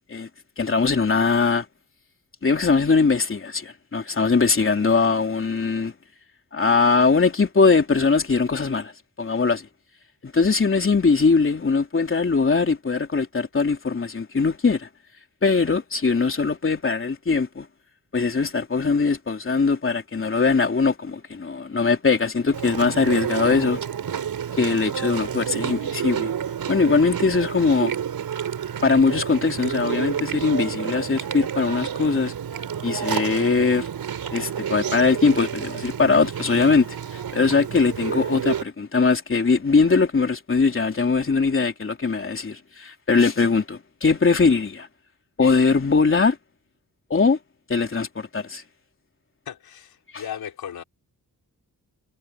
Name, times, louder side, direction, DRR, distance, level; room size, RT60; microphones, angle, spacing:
voice 1, 0.6-1.7 2.4-5.9 6.5-8.9 9.2-9.7 10.2-14.9 15.4-17.7 18.1-23.8 24.6-26.3 26.7-27.9 28.8-32.3 32.8-33.9 34.3-44.9 45.4-46.4 47.1-47.4 47.7-48.6 50.1-50.2, left 4 dB, 35° left, 3.4 m, -21 dB
Chewing mastication, 22.5-38.6, right 8 dB, 80° right, 4.6 m, -30 dB
voice 2, 49.5-50.8, left 9 dB, 90° left, 4.0 m, -36 dB
cardioid pair, 90°, 35 cm